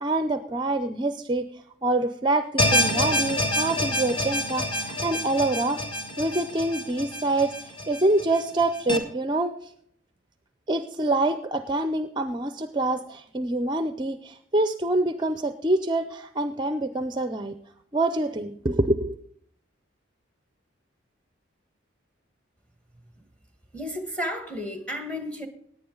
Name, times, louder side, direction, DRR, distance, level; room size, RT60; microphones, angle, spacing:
voice 1, 0.0-5.8 6.2-9.7 10.7-17.5 17.9-19.1, right 2 dB, 25° right, 0.5 m, -26 dB
sound 1, 2.6-9.0, left 1 dB, 25° left, 1.5 m, -27 dB
voice 2, 23.7-25.5, equal, 5° left, 1.5 m, -32 dB
17.5 x 9.4 x 3.9 m
head